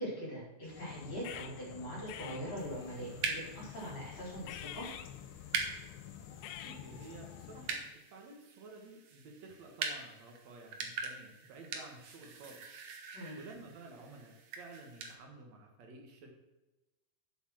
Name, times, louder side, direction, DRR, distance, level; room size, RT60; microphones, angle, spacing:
voice 1, 0.0-4.9 13.1-13.4, equal, 30° left, -5 dB, 5.0 m, -42 dB
sound 1, 0.7-7.9, left 11 dB, 85° left, 2.8 m, -48 dB
sound 2, 2.6-15.1, right 5 dB, 70° right, 1.5 m, -43 dB
voice 2, 6.6-12.6 13.3-16.3, right 3 dB, 55° right, 2 dB, 2.3 m, -52 dB
8.2 x 8.1 x 6.4 m, 1.0 s
omnidirectional pair, 4.7 m